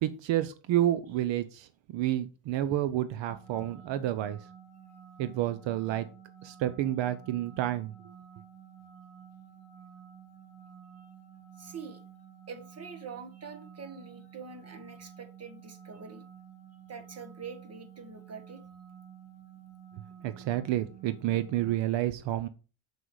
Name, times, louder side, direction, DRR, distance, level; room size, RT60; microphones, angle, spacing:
voice 1, 0.0-4.4 5.2-6.1 6.4-7.9 20.2-22.5, right 13 dB, 65° right, 13 dB, 0.8 m, -29 dB
sound 1, 3.3-21.8, right 8 dB, 5° right, 2.7 m, -51 dB
voice 2, 11.6-12.0 12.5-16.2 16.9-18.6, right 5 dB, 30° right, 8 dB, 1.7 m, -45 dB
6.9 x 6.2 x 4.7 m, 0.33 s
cardioid pair, 110°, 47 cm